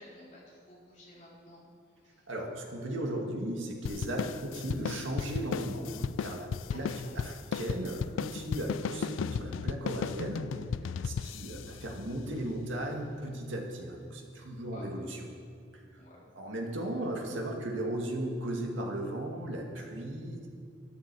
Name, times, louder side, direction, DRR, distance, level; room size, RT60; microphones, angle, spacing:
voice 1, 0.0-1.6 2.0-2.3 6.7-7.2 14.7-15.0 16.0-16.2, left 1 dB, 35° left, -7 dB, 4.0 m, -52 dB
voice 2, 2.3-10.5 11.0-15.2 16.3-20.5, right 1 dB, 80° right, 1 dB, 2.0 m, -36 dB
sound 1, 3.9-12.7, left 6 dB, 85° left, 0.3 m, -36 dB
13.0 x 13.0 x 4.8 m, 2.2 s
head